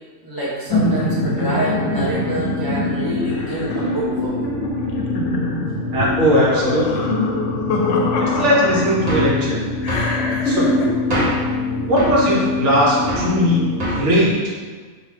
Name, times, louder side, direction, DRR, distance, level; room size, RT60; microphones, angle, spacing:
voice 1, 0.2-4.5 5.9-6.1 11.8-12.1, right 1 dB, 20° left, -9 dB, 0.7 m, -27 dB
sound 1, 0.7-9.2 9.8-10.9, left 1 dB, 75° left, 0.9 m, -24 dB
sound 2, 0.7-14.3, left 3 dB, 90° right, 1.1 m, -26 dB
voice 2, 5.9-7.0 8.2-9.6 10.4-10.7 11.9-13.6 13.9-14.3, equal, 70° right, -4 dB, 1.2 m, -18 dB
sound 3, 9.1-9.4 9.9-10.2 11.1-11.5 12.0-12.2 13.1-13.4 13.8-14.1, right 1 dB, 35° right, 0.9 m, -24 dB
4.7 x 2.7 x 3.2 m, 1.5 s
omnidirectional pair, 1.3 m